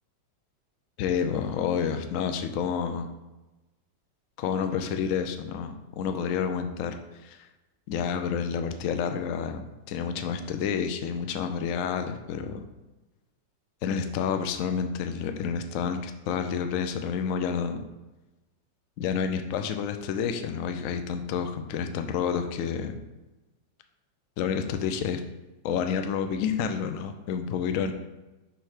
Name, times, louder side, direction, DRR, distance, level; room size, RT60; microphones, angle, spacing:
voice 1, 1.0-3.1 4.4-7.0 7.2-7.5 7.9-12.7 13.8-17.8 19.0-23.0 24.4-25.2 25.6-27.9, left 7 dB, 70° left, 7 dB, 0.7 m, -29 dB
6.4 x 3.2 x 4.9 m, 1.1 s
omnidirectional pair, 1.9 m